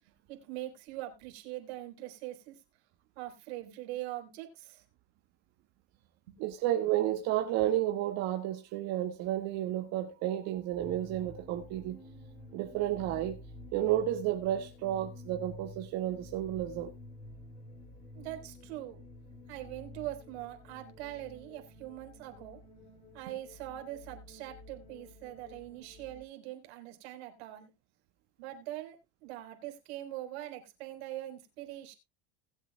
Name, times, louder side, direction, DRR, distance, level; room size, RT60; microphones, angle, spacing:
voice 1, 0.3-2.6 3.2-4.8 18.1-19.0 19.5-27.7 28.4-31.9, right 14 dB, 80° right, 4.1 m, -42 dB
voice 2, 6.4-12.0 12.5-13.4 13.7-16.9, right 12 dB, 55° right, 1.7 m, -31 dB
sound 1, 10.8-26.2, left 1 dB, 20° left, 4.0 m, -50 dB
20.5 x 8.2 x 2.2 m
supercardioid pair, 135°, 31 cm